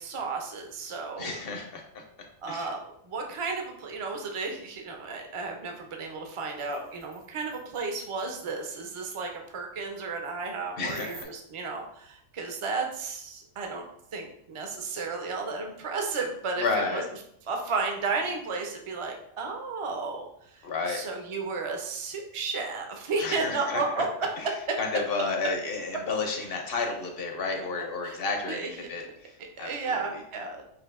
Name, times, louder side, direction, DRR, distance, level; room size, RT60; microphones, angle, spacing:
voice 1, 0.0-1.4 2.4-13.8 14.1-17.0 17.5-24.1 28.0-28.2 28.5-28.9 29.6-30.6, right 4 dB, 45° right, 2 dB, 0.4 m, -33 dB
voice 2, 1.2-2.0 2.5-2.7 10.8-11.3 16.6-17.1 20.6-21.0 23.2-24.0 24.4-24.5 24.8-28.6 28.9-30.2, left 4 dB, 55° left, 3 dB, 0.7 m, -31 dB
sound 1, 6.1-6.2 6.4-7.9 8.2-8.3 10.9-11.2, right 4 dB, 65° right, 0.8 m, -51 dB
5.9 x 2.6 x 2.5 m, 0.70 s
omnidirectional pair, 1.4 m